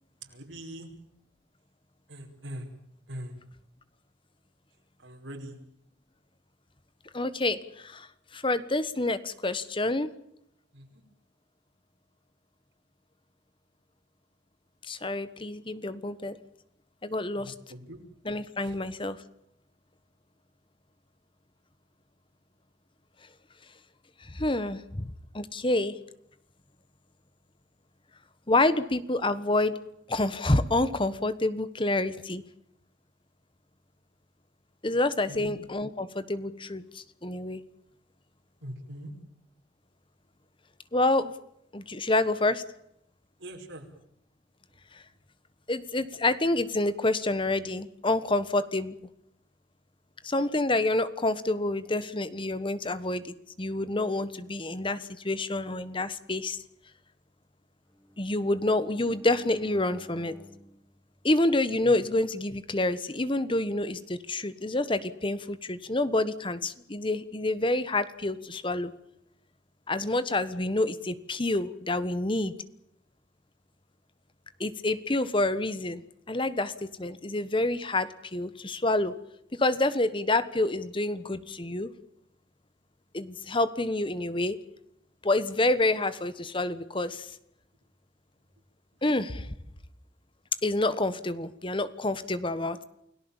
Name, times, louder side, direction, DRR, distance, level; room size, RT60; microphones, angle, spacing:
voice 1, 0.2-0.9 2.1-2.7 3.1-3.3 5.0-5.6 10.7-11.0 17.3-18.0 18.6-18.8 35.3-35.5 38.6-39.1 43.4-43.9, right 1 dB, 90° right, 2 dB, 5.1 m, -42 dB
voice 2, 7.1-10.1 14.9-16.4 17.0-17.5 18.2-19.2 24.2-26.0 28.5-29.8 30.1-32.4 34.8-37.6 40.9-41.3 41.7-42.6 44.9-45.0 45.7-49.0 50.2-56.6 58.2-60.3 61.2-68.9 69.9-72.5 74.6-76.0 76.3-79.1 79.6-81.9 83.1-84.6 85.2-87.4 89.0-89.5 90.6-92.8, left 2 dB, 25° left, 14 dB, 1.3 m, -28 dB
Bowed string instrument, 57.9-62.0, equal, ahead, 4.8 m, -54 dB
29.5 x 17.5 x 7.3 m, 0.77 s
head